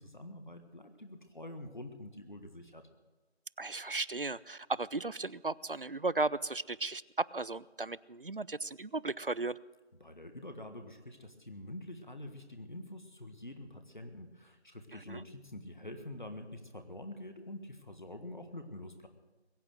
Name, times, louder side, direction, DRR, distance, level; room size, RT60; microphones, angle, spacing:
voice 1, 0.0-2.9 10.0-19.1, left 1 dB, 45° left, 7 dB, 1.4 m, -46 dB
voice 2, 3.6-9.6 14.9-15.2, right 3 dB, 55° right, 21 dB, 0.4 m, -35 dB
21.5 x 8.5 x 7.6 m, 1.2 s
figure-of-eight pair, 175°, 33 cm